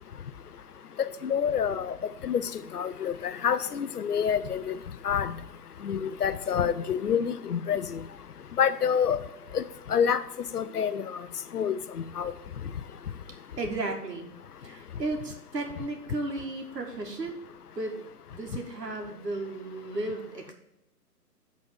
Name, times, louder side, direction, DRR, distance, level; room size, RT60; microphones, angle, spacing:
voice 1, 1.0-1.9 2.2-2.4 2.7-4.8 5.0-5.3 5.8-7.8 8.6-9.2 9.5-9.6 9.9-10.2 10.5-11.0 11.5-11.8 12.2-12.3, left 7 dB, 65° left, 13 dB, 0.7 m, -27 dB
voice 2, 13.6-14.3 14.6-17.4 17.8-18.0 18.3-20.5, right 2 dB, 80° right, 2 dB, 2.1 m, -34 dB
7.7 x 4.2 x 6.3 m, 0.88 s
hypercardioid pair, 155°, 48 cm